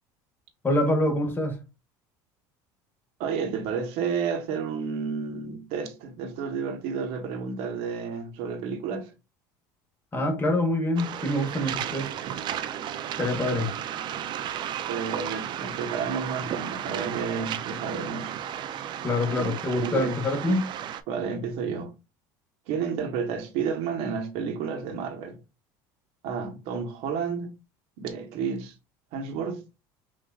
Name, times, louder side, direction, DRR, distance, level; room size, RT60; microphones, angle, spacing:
voice 1, 0.6-1.6 10.1-12.1 13.2-13.7 19.0-20.7, left 1 dB, 20° left, 1.4 m, -25 dB
voice 2, 3.2-9.1 13.5-13.6 14.9-18.3 19.4-20.1 21.1-21.9 22.7-25.4 26.2-27.5 28.0-28.7 29.1-29.6, right 6 dB, 70° right, 1.0 m, -31 dB
Waves surf, 11.0-21.0, right 10 dB, 50° right, 0.4 m, -34 dB
5.8 x 2.6 x 2.3 m
supercardioid pair, 105°, 10 cm